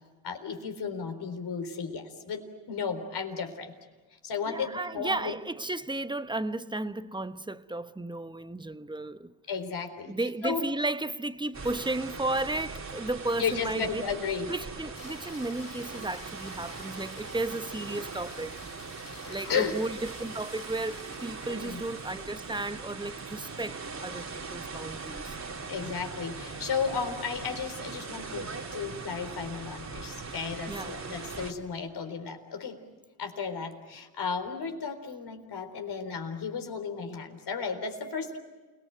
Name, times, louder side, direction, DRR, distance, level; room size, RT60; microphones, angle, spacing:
voice 1, 0.2-3.7 4.2-5.4 9.5-10.7 13.4-14.5 17.5-17.6 19.3-19.8 21.5-21.8 25.7-32.8 33.2-38.4, left 6 dB, 55° left, 4.0 m, -34 dB
voice 2, 4.4-9.3 10.1-14.0 14.5-18.5 18.8-18.9 19.3-25.4 26.9-27.0 30.7-31.0, right 2 dB, 10° right, 1.1 m, -34 dB
sound 1, 11.5-31.5, right 4 dB, 35° right, 2.9 m, -40 dB
sound 2, 14.9-27.3 31.8-31.9, left 7 dB, 90° left, 3.8 m, -54 dB
29.0 x 19.0 x 9.2 m
supercardioid pair, 60°, 46 cm